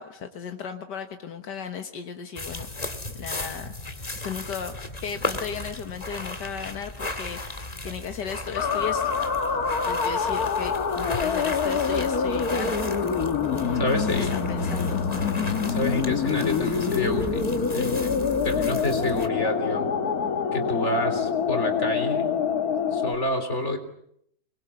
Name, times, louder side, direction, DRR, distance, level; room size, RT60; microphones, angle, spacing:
voice 1, 0.0-3.7 4.2-9.1 9.8-12.8 13.5-15.1, left 7 dB, 85° left, 6 dB, 2.0 m, -36 dB
sound 1, 2.3-19.3, left 2 dB, 25° left, 2.0 m, -36 dB
sound 2, 8.5-23.1, left 6 dB, 60° left, 2.0 m, -26 dB
voice 2, 13.8-14.4 15.6-19.9 20.5-22.4 22.9-23.8, left 1 dB, 40° left, 6 dB, 3.8 m, -28 dB
26.0 x 21.5 x 8.3 m, 0.72 s
omnidirectional pair, 1.8 m